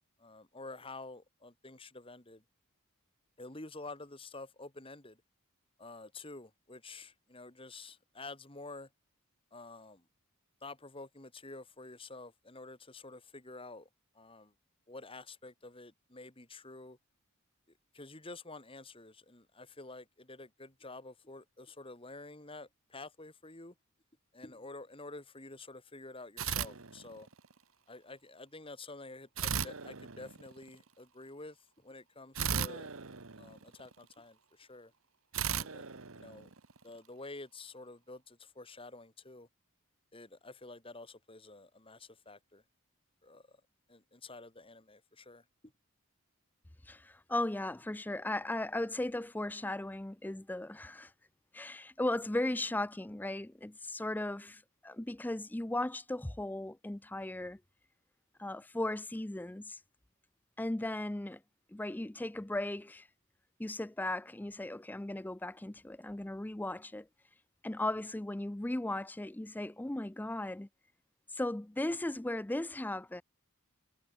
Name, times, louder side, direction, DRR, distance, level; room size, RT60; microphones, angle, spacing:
voice 1, 0.2-2.4 3.4-5.2 5.8-8.9 9.5-10.0 10.6-13.9 14.1-14.5 14.9-17.0 17.9-23.7 24.3-27.3 27.9-32.9 33.4-34.9 35.4-36.5 36.8-39.5 40.1-42.6 43.2-43.6 43.9-45.4, left 2 dB, 25° left, 2.2 m, -49 dB
sound 1, 26.4-27.5 29.4-30.7 32.3-34.0 35.3-36.9, right 7 dB, 70° right, 1.4 m, -37 dB
voice 2, 46.8-51.1 51.5-57.6 58.4-59.8 60.6-61.4 61.7-63.1 63.6-67.1 67.6-70.7 71.3-73.2, left 1 dB, 10° left, 0.4 m, -37 dB
head